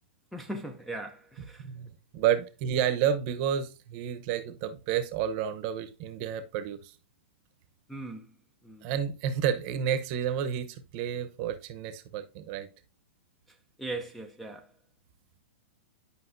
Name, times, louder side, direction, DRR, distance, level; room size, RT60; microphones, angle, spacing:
voice 1, 0.3-1.7 7.9-8.3 8.6-8.9 13.8-14.7, right 2 dB, ahead, 0.6 m, -39 dB
voice 2, 1.4-6.9 8.8-12.7, right 9 dB, 40° right, 0.9 m, -30 dB
10.0 x 5.3 x 2.6 m
hypercardioid pair, 145°, 7 cm